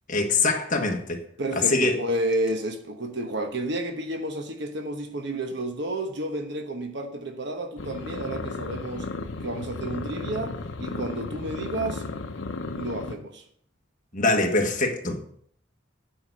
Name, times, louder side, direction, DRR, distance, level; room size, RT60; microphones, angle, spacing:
voice 1, 0.1-1.2 1.5-2.0 14.1-15.2, left 3 dB, 45° left, 2 dB, 1.5 m, -23 dB
voice 2, 1.4-9.1 9.4-10.5 10.8-12.0 12.7-13.4, right 1 dB, 65° right, 5 dB, 1.1 m, -31 dB
sound 1, 7.8-13.1, left 3 dB, 85° left, 0.8 m, -34 dB
8.9 x 4.6 x 6.6 m, 0.63 s
head